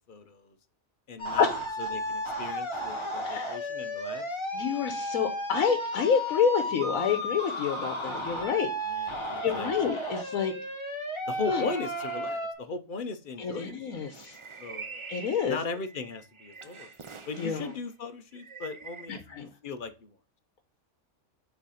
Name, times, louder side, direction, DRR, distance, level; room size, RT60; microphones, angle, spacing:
voice 1, 0.1-0.5 1.1-1.5 1.9-4.3 8.9-9.7 11.3-14.0 14.6-14.9 15.5-16.9 17.3-20.1, left 4 dB, 45° left, 9 dB, 0.7 m, -37 dB
sound 1, 1.2-12.5, equal, 20° left, 1.3 m, -33 dB
voice 2, 3.2-3.6 4.5-8.7 9.0-9.1 9.4-10.5 11.5-11.7 13.4-14.4 15.1-15.6 17.4-17.7 19.1-19.5, left 7 dB, 80° left, 6 dB, 1.2 m, -28 dB
sound 2, 13.4-17.9 18.3-19.1, right 4 dB, 40° right, 0.4 m, -45 dB
6.4 x 3.2 x 5.5 m, 0.35 s
omnidirectional pair, 1.4 m